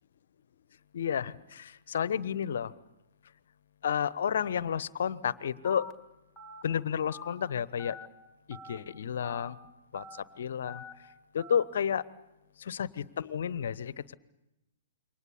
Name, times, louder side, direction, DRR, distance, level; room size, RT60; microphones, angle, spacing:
voice 1, 0.9-2.7 3.8-5.9 6.6-8.0 8.5-9.6 9.9-10.8 11.3-12.0 12.6-14.1, left 8 dB, 60° left, 19 dB, 0.9 m, -31 dB
Telephone, 5.6-5.9 6.4-6.6 7.1-7.3 7.8-8.1 8.5-8.8 9.2-9.5 9.9-10.2 10.7-10.9 11.4-11.6, left 3 dB, 15° left, 2.0 m, -45 dB
28.0 x 24.0 x 7.1 m, 0.96 s
figure-of-eight pair, 115°, 0 cm